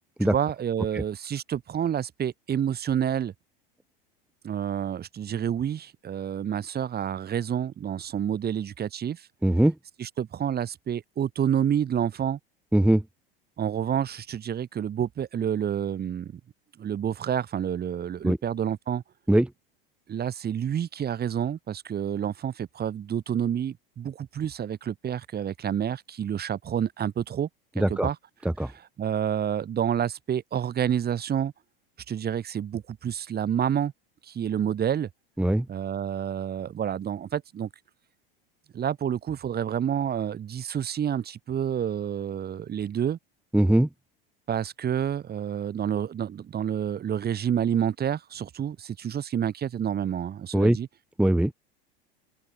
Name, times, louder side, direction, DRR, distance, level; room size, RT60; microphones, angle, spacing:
voice 1, 0.2-3.3 4.4-9.3 10.0-12.4 13.6-16.4 16.8-19.0 20.1-27.5 27.8-28.2 28.6-31.5 32.1-33.9 34.2-35.1 35.7-37.7 38.7-43.2 44.5-50.9, right 9 dB, 35° right, 5.3 m, -29 dB
voice 2, 9.4-9.7 12.7-13.0 18.2-18.4 19.3-19.5 27.8-28.1 28.6-28.7 35.4-35.6 43.5-43.9 50.5-50.8 51.2-51.5, right 1 dB, 5° right, 1.7 m, -21 dB
hypercardioid pair, 90°, 29 cm